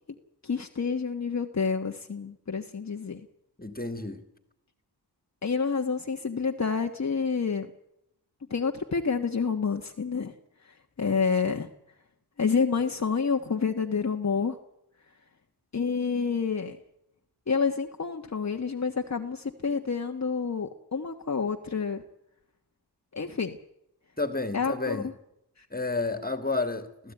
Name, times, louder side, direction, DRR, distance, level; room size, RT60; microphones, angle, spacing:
voice 1, 0.4-3.3 5.4-7.7 8.5-10.3 10.6-11.7 12.4-14.6 15.7-16.8 17.5-22.0 23.1-23.5 24.5-25.0 25.6-25.7, left 5 dB, 40° left, 1.5 m, -28 dB
voice 2, 3.6-4.2 24.2-25.1 25.7-27.1, left 3 dB, 20° left, 2.6 m, -31 dB
25.0 x 15.0 x 9.2 m
cardioid pair, 50°, 42 cm